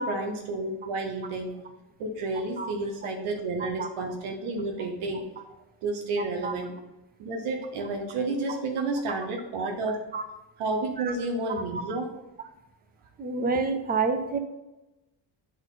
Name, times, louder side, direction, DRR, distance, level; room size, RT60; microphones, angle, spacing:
voice 1, 0.0-1.6 2.0-5.5 5.8-6.7 7.2-10.0 10.6-12.1, right 2 dB, 85° right, 3 dB, 1.1 m, -31 dB
voice 2, 6.2-6.5 8.5-8.6 10.1-10.2 11.0-11.1 11.5-11.8 13.2-14.4, right 4 dB, 20° right, 8 dB, 0.4 m, -29 dB
8.7 x 3.9 x 4.1 m, 1.0 s
cardioid pair, 170°, 48 cm